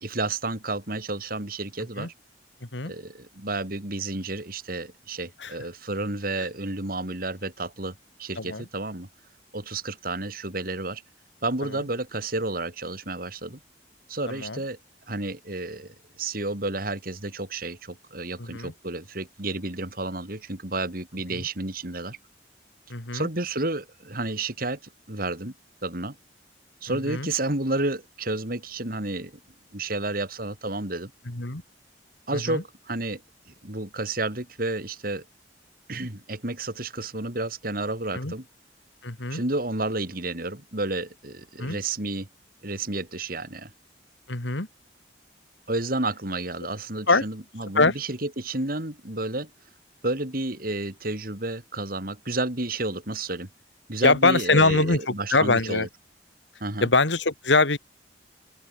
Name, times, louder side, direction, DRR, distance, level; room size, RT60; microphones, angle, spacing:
voice 1, 0.0-2.1 2.9-9.1 9.5-11.0 11.4-13.6 14.1-14.8 15.1-22.2 23.1-24.8 25.1-25.5 25.8-26.2 26.8-29.3 29.7-31.1 32.3-33.2 33.5-35.3 35.9-38.5 39.3-42.3 42.6-43.7 45.7-49.5 50.0-53.5 53.9-55.9 56.6-56.9, right 2 dB, 50° right, 3.4 m, -31 dB
voice 2, 14.3-14.6 18.4-18.7 21.3-21.4 22.9-23.3 26.9-27.3 31.3-31.6 32.5-32.6 38.1-38.3 39.0-39.4 41.6-41.8 44.3-44.7 47.1-47.2 47.8-47.9 54.0-55.9 56.8-57.8, left 3 dB, 80° left, 2.7 m, -23 dB
open air
head